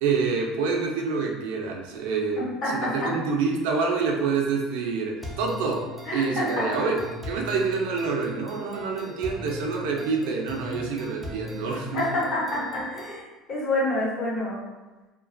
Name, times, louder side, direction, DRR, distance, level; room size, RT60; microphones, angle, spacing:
voice 1, 0.0-12.0, right 4 dB, 80° right, 1 dB, 0.4 m, -27 dB
sound 1, 5.2-13.2, left 2 dB, ahead, 0.3 m, -40 dB
voice 2, 6.1-6.6 11.9-14.6, left 2 dB, 35° left, -7 dB, 0.9 m, -27 dB
2.4 x 2.2 x 2.5 m, 1.2 s
cardioid pair, 175°, 0 cm